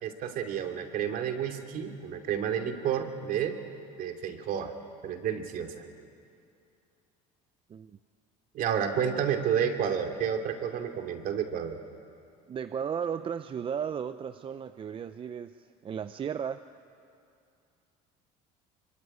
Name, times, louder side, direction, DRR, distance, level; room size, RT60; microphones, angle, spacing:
voice 1, 0.0-3.6 4.0-4.7 5.0-5.8 8.5-11.8, right 8 dB, 55° right, 5 dB, 2.8 m, -30 dB
voice 2, 12.5-16.6, right 7 dB, 30° right, 11 dB, 0.6 m, -35 dB
24.0 x 24.0 x 9.8 m, 2.5 s
supercardioid pair, 110°, 17 cm